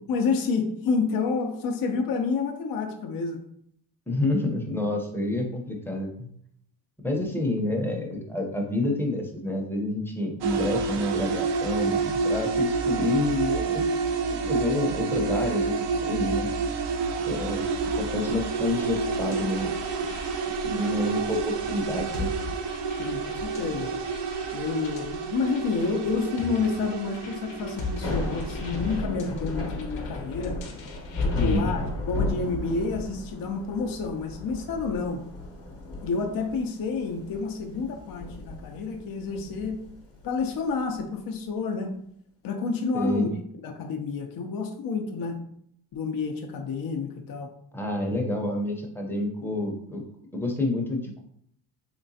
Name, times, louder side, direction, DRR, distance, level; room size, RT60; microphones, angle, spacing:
voice 1, 0.1-3.4 23.0-24.0 24.5-30.6 31.2-35.2 36.0-39.8 40.2-41.9 42.4-43.3 43.6-45.4 45.9-47.5, left 4 dB, 50° left, 4 dB, 0.6 m, -29 dB
voice 2, 4.1-6.3 7.0-13.9 14.4-16.5 17.3-17.6 18.0-19.8 20.6-22.3 31.3-31.7 42.9-43.3 47.7-50.0 50.3-51.2, left 1 dB, 5° left, 0 dB, 0.7 m, -28 dB
sound 1, 10.4-29.0, right 4 dB, 65° right, 0.6 m, -29 dB
sound 2, 18.8-31.7, left 3 dB, 80° left, 0.8 m, -42 dB
Thunder / Rain, 27.8-41.0, left 2 dB, 30° left, 1.0 m, -34 dB
3.2 x 2.9 x 2.7 m, 0.69 s
cardioid pair, 85°, 45 cm